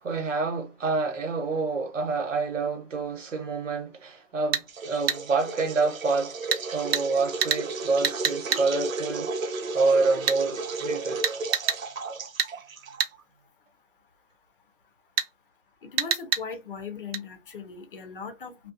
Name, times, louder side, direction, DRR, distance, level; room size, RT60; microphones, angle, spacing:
voice 1, 0.0-6.3 6.7-11.2, right 4 dB, 70° right, 1.1 m, -27 dB
sound 1, 4.5-4.7 5.1-5.2 6.5-6.6 6.9-7.1 7.4-7.6 8.0-8.6 10.3-10.4 11.2-11.8 12.4-12.5 13.0-13.1 15.2-15.3 16.0-16.4 17.1-17.2, right 6 dB, 50° right, 0.6 m, -26 dB
sound 2, 4.7-13.2, right 3 dB, 90° right, 0.8 m, -34 dB
voice 2, 15.8-18.7, left 5 dB, 40° left, 0.7 m, -39 dB
2.4 x 2.2 x 2.6 m
hypercardioid pair, 160°, 39 cm